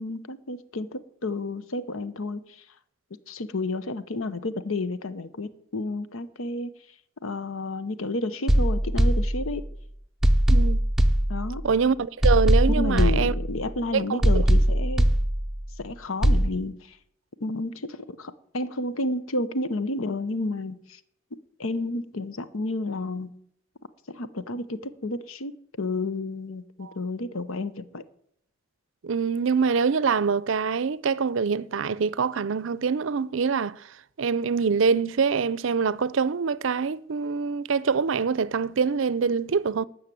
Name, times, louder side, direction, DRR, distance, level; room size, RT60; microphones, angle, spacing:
voice 1, 0.0-2.6 3.3-6.7 7.2-9.6 11.3-11.6 12.8-15.1 15.8-17.0 17.4-21.0 21.6-23.3 24.1-25.5 25.8-28.0, left 2 dB, 80° left, 0.9 m, -31 dB
sound 1, 8.5-9.8 10.2-11.8 12.2-13.8 14.2-15.8 16.2-16.5, right 1 dB, ahead, 0.6 m, -21 dB
voice 2, 10.5-10.8 11.6-13.3 13.9-14.4 26.8-26.9 29.0-33.9 34.2-39.9, right 5 dB, 70° right, 0.5 m, -25 dB
13.0 x 6.6 x 9.1 m
head